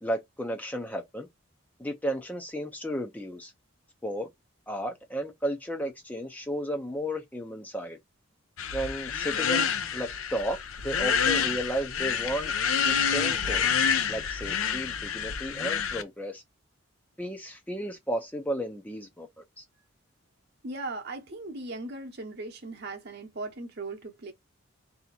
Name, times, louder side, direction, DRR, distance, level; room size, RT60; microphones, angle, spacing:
voice 1, 0.0-1.3 1.8-3.5 4.0-4.3 4.7-8.0 8.7-10.6 10.8-12.5 12.8-13.7 14.1-16.4 17.2-19.3 19.6-19.7, equal, 5° left, 0.5 m, -33 dB
sound 1, 8.6-16.0, left 7 dB, 75° left, 0.6 m, -28 dB
voice 2, 20.6-24.3, right 2 dB, 50° right, 0.9 m, -38 dB
3.3 x 2.8 x 4.1 m
head